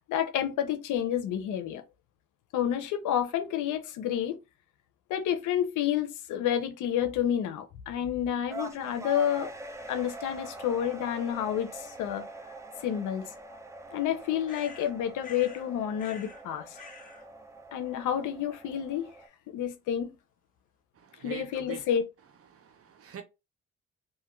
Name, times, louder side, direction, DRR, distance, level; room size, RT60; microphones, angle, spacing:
voice 1, 0.1-1.8 2.5-4.4 5.1-9.5 9.9-12.2 12.8-13.3 13.9-16.8 17.7-19.1 19.5-20.1 21.2-22.0, left 10 dB, 85° left, 0.6 m, -29 dB
sound 1, 8.5-19.3, right 2 dB, 10° right, 0.4 m, -44 dB
sound 2, 14.5-15.7 16.0-16.4 16.7-17.3, left 5 dB, 25° left, 0.8 m, -48 dB
voice 2, 21.2-21.8 22.5-23.2, right 8 dB, 50° right, 0.7 m, -43 dB
2.5 x 2.4 x 3.0 m
cardioid pair, 90°, 30 cm